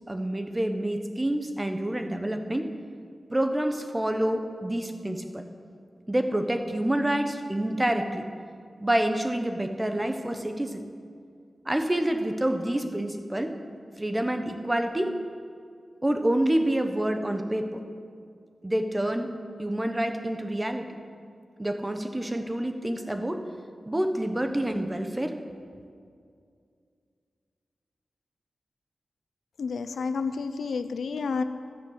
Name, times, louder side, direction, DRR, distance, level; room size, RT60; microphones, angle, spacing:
voice 1, 0.1-2.7 3.3-5.4 6.1-8.3 8.8-10.8 11.6-13.6 14.0-15.2 16.0-17.8 18.6-19.3 19.6-20.9 21.6-23.5 23.8-25.4, right 1 dB, 15° right, 6 dB, 1.0 m, -27 dB
voice 2, 29.6-31.4, left 4 dB, 90° left, 10 dB, 0.6 m, -30 dB
12.5 x 10.0 x 8.0 m, 2.3 s
wide cardioid pair, 135°, 0 cm